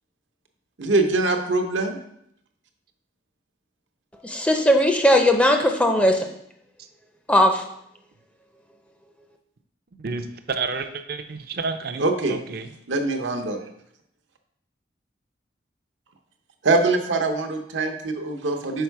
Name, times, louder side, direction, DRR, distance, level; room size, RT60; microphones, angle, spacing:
voice 1, 0.8-2.0 12.0-12.4 12.9-13.6 16.6-18.8, right 2 dB, 85° right, 4 dB, 0.8 m, -23 dB
voice 2, 4.2-6.3 7.3-7.7, left 1 dB, 5° left, 4 dB, 0.5 m, -18 dB
voice 3, 10.0-12.7, right 4 dB, 55° right, 9 dB, 0.5 m, -30 dB
5.7 x 4.6 x 4.6 m, 0.74 s
head